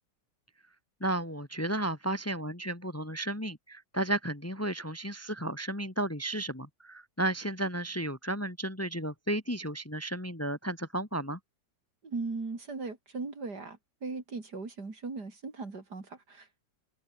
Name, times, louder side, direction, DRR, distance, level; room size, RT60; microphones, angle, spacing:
voice 1, 1.0-11.4, right 1 dB, 10° left, 2.0 m, -33 dB
voice 2, 12.0-16.6, right 3 dB, 60° right, 4.1 m, -38 dB
open air
omnidirectional pair, 2.0 m